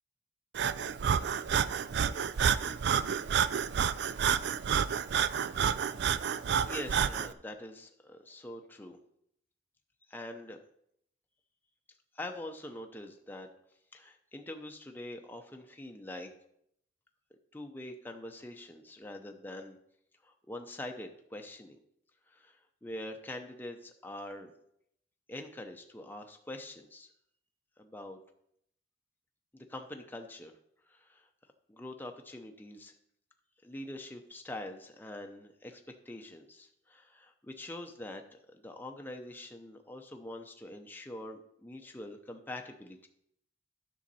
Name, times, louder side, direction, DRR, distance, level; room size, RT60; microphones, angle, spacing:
Breathing, 0.5-7.3, right 7 dB, 60° right, 0.4 m, -29 dB
voice 1, 6.7-9.0 10.1-10.6 12.1-13.5 13.9-16.3 17.5-19.8 20.2-21.8 22.3-24.5 25.3-27.1 27.8-28.2 29.5-30.6 30.9-31.3 31.7-32.9 33.6-43.1, left 1 dB, 10° left, 3 dB, 0.6 m, -44 dB
10.0 x 6.3 x 4.1 m, 0.73 s
head